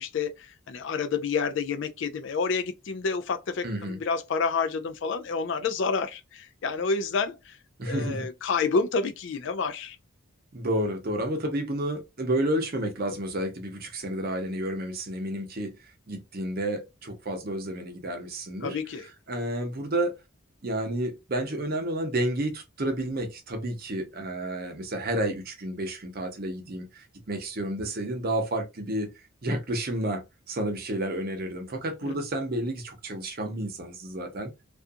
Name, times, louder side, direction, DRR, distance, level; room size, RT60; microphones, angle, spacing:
voice 1, 0.0-7.6 7.8-10.0 18.6-19.1 32.0-32.2, left 5 dB, 60° left, 0.3 m, -29 dB
voice 2, 3.6-4.0 7.8-8.3 10.5-18.8 19.3-20.1 20.6-29.1 29.4-34.5, right 1 dB, 45° right, 0.7 m, -31 dB
2.4 x 2.4 x 2.5 m
head